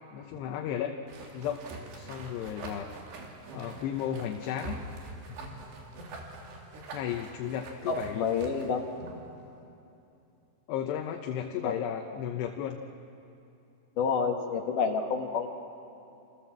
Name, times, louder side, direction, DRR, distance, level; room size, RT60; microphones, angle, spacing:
voice 1, 0.1-0.9 1.3-1.6 1.9-2.9 3.5-4.8 6.9-8.3 10.7-12.8, left 9 dB, 80° left, 3 dB, 3.1 m, -34 dB
sound 1, 1.1-9.3, right 2 dB, 75° right, 5.0 m, -44 dB
voice 2, 7.9-8.9 11.6-11.8 14.0-15.5, left 5 dB, 60° left, 4 dB, 2.7 m, -29 dB
28.5 x 27.5 x 7.5 m, 2.7 s
omnidirectional pair, 4.9 m